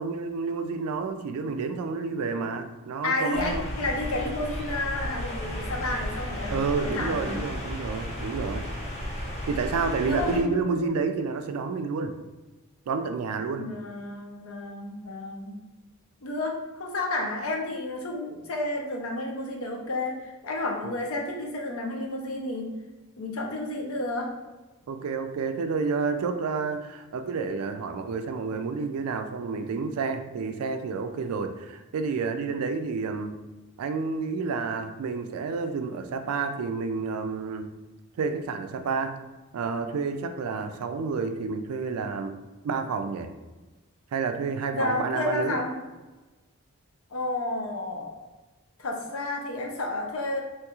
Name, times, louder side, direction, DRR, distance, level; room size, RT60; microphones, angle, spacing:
voice 1, 0.0-3.7 6.5-8.7 9.5-12.2 12.9-13.7 20.8-21.0 24.9-33.4 33.8-37.7 38.2-39.2 39.5-42.4 42.6-43.3 44.1-45.6, right 4 dB, 80° right, 7 dB, 0.3 m, -30 dB
voice 2, 3.0-6.5 6.8-7.4 10.0-11.0 13.4-15.5 16.2-22.7 23.2-24.3 44.7-45.8 47.1-48.2 48.8-50.4, left 2 dB, 70° left, 1 dB, 0.6 m, -31 dB
sound 1, 3.3-10.4, equal, 30° left, 0.7 m, -34 dB
3.0 x 2.3 x 2.9 m, 1.2 s
head